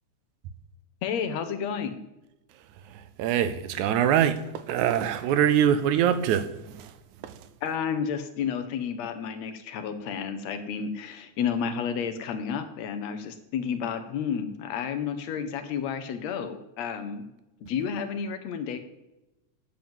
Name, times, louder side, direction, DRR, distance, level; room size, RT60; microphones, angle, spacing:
voice 1, 1.0-2.0 7.6-17.2 17.6-18.8, left 7 dB, 70° left, 1.9 m, -31 dB
voice 2, 2.9-6.9 7.2-7.4, right 9 dB, 80° right, 2.1 m, -24 dB
9.3 x 7.5 x 7.1 m
omnidirectional pair, 3.4 m